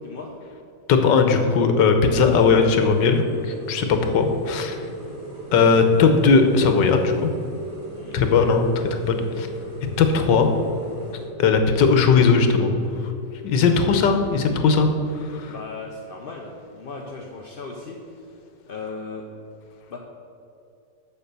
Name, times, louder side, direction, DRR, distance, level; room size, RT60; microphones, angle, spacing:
voice 1, 0.0-0.4 7.9-8.2 15.1-18.3 18.7-19.2 19.9-20.0, left 3 dB, 55° left, 0 dB, 0.6 m, -37 dB
voice 2, 0.9-3.2 3.7-4.7 5.5-7.3 8.1-8.7 9.1-9.5 10.0-10.5 11.4-12.8 13.4-14.9 15.4-15.5, left 5 dB, 85° left, 6 dB, 1.6 m, -18 dB
sound 1, 2.1-11.2, right 2 dB, 55° right, 2.7 m, -38 dB
7.0 x 7.0 x 6.7 m, 2.7 s
omnidirectional pair, 1.9 m